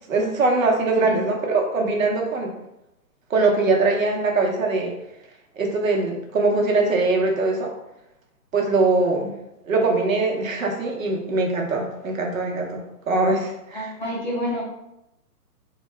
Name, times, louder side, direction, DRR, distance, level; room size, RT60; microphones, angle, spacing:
voice 1, 0.1-2.5 3.3-4.9 5.5-7.7 8.5-9.3 9.7-13.9, right 3 dB, 60° right, 1 dB, 0.9 m, -22 dB
voice 2, 13.7-14.6, equal, 30° left, -4 dB, 0.5 m, -28 dB
4.0 x 2.3 x 3.3 m, 0.88 s
hypercardioid pair, 170°, 47 cm